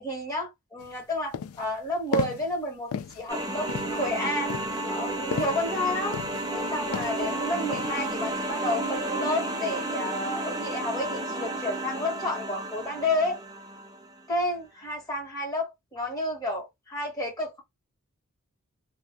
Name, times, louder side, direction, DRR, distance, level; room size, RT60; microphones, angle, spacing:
voice 1, 0.0-4.5 4.9-6.2 6.5-13.4 14.3-17.6, left 1 dB, 15° left, 1.1 m, -31 dB
sound 1, 0.8-0.9 1.3-1.7 2.1-2.5 2.9-3.3 3.7-4.0 4.5-5.7 6.1-6.6 6.9-7.3 7.7-8.1, left 7 dB, 75° left, 0.3 m, -34 dB
sound 2, 3.3-14.1, right 1 dB, 15° right, 0.4 m, -32 dB
2.3 x 2.1 x 2.7 m
head